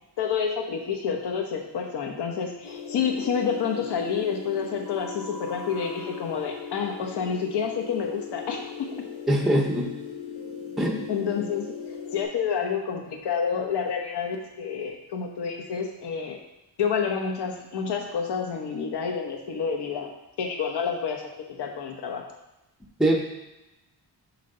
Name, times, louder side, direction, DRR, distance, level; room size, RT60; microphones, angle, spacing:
voice 1, 0.2-8.6 11.1-11.7 12.1-16.4 16.8-20.1 20.4-22.2, left 6 dB, 65° left, 1 dB, 1.1 m, -29 dB
sound 1, 2.6-12.2, left 6 dB, 85° left, 1.2 m, -38 dB
voice 2, 9.3-9.9 10.8-11.0 23.0-23.2, right 1 dB, ahead, 1 dB, 0.6 m, -22 dB
7.4 x 2.9 x 5.4 m, 0.99 s
wide cardioid pair, 175°, 44 cm